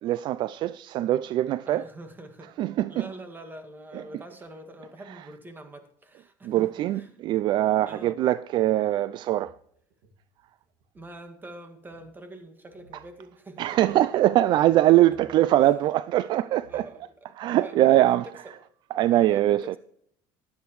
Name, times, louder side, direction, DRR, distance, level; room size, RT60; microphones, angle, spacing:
voice 1, 0.0-1.8 2.6-3.1 3.9-4.0 6.4-9.5 13.6-16.9 17.4-18.3 18.9-19.8, right 14 dB, 50° right, 0.4 m, -22 dB
voice 2, 1.7-2.5 2.9-6.7 6.9-7.1 7.9-8.2 10.9-13.6 15.3-15.7 16.7-17.1 17.5-18.4 19.1-19.8, right 1 dB, 20° right, 2.0 m, -44 dB
sound 1, 8.7-11.2 11.5-11.6 11.8-12.1 12.7-13.2 13.5-14.1 15.0-15.4 16.2-16.3 16.6-17.2, right 1 dB, 75° right, 2.1 m, -58 dB
14.5 x 10.5 x 3.1 m
supercardioid pair, 95°, 10 cm